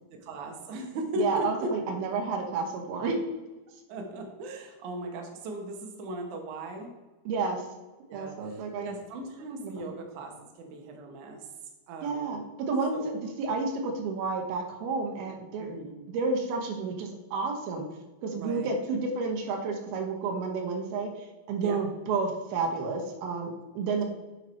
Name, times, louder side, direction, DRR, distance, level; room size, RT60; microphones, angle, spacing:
voice 1, 0.2-1.7 3.9-6.9 8.1-10.3 10.6-11.4 11.9-12.4 12.9-13.1 15.6-15.9 18.3-18.7 21.6-21.8, right 1 dB, 65° right, 2 dB, 2.4 m, -37 dB
voice 2, 1.2-3.2 7.3-7.6 8.1-8.9 9.6-9.9 12.0-13.0 13.4-15.8 16.1-17.9 18.2-24.0, right 4 dB, 80° right, 2 dB, 3.0 m, -31 dB
8.9 x 5.7 x 4.4 m, 1.2 s
omnidirectional pair, 4.4 m